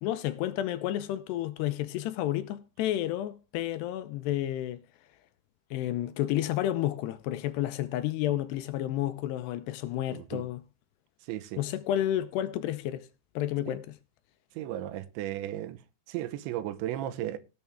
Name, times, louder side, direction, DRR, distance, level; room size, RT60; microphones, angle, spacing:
voice 1, 0.0-4.8 5.7-10.6 11.6-13.1 13.4-14.0, left 13 dB, 80° left, 2.7 m, -31 dB
voice 2, 10.1-10.4 11.3-11.6 13.7-13.8 14.6-15.8 16.1-17.4, right 13 dB, 90° right, 3.2 m, -35 dB
18.0 x 7.0 x 3.6 m
omnidirectional pair, 5.2 m